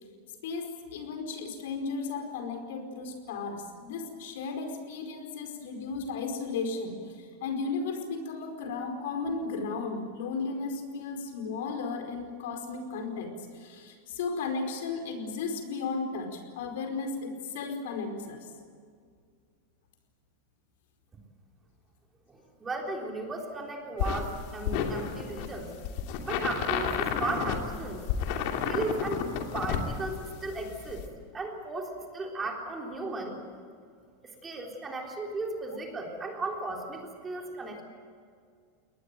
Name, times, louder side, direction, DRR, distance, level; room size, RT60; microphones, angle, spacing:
voice 1, 0.4-7.0 7.4-13.3 13.6-18.4, left 4 dB, 75° left, 5 dB, 4.8 m, -34 dB
voice 2, 22.3-25.7 26.2-28.0 28.7-29.2 29.5-31.0 31.3-33.4 34.2-37.8, right 3 dB, 15° right, 1 dB, 3.6 m, -35 dB
sound 1, 24.0-31.0, left 7 dB, 55° left, 2.8 m, -31 dB
22.0 x 19.5 x 9.2 m, 2.1 s
supercardioid pair, 150°, 0 cm